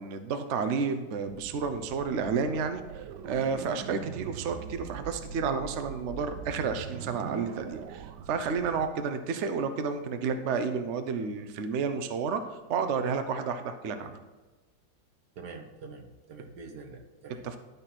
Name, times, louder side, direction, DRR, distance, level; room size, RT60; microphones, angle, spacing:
voice 1, 0.0-14.2 17.4-17.6, right 5 dB, 55° right, 8 dB, 0.8 m, -31 dB
sound 1, 1.2-8.9, right 8 dB, 90° right, 1.3 m, -42 dB
voice 2, 15.4-17.4, right 4 dB, 70° right, 3 dB, 1.7 m, -45 dB
12.5 x 4.2 x 6.0 m, 1.2 s
omnidirectional pair, 1.8 m